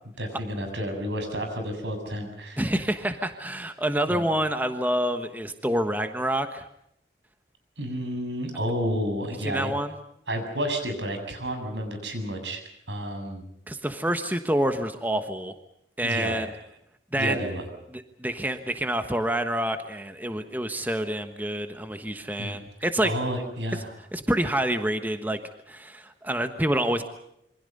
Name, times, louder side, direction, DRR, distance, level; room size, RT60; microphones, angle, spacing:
voice 1, 0.2-2.6 4.1-4.2 7.8-9.7 10.3-12.6 12.9-13.4 16.0-16.5 17.2-17.7 22.4-22.6 23.0-23.9, equal, 80° right, 6 dB, 7.3 m, -31 dB
voice 2, 2.6-6.7 9.4-9.9 13.7-15.5 16.0-16.5 17.1-17.5 17.9-23.1 24.1-25.4 25.7-27.0, right 1 dB, 10° right, 8 dB, 1.3 m, -27 dB
27.5 x 25.0 x 5.5 m, 0.78 s
head